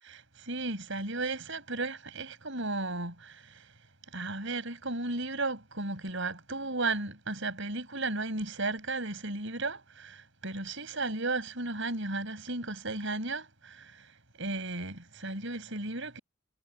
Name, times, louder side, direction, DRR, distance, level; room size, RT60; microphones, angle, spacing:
voice 1, 0.0-3.7 4.1-16.2, right 2 dB, 60° right, 6.1 m, -35 dB
head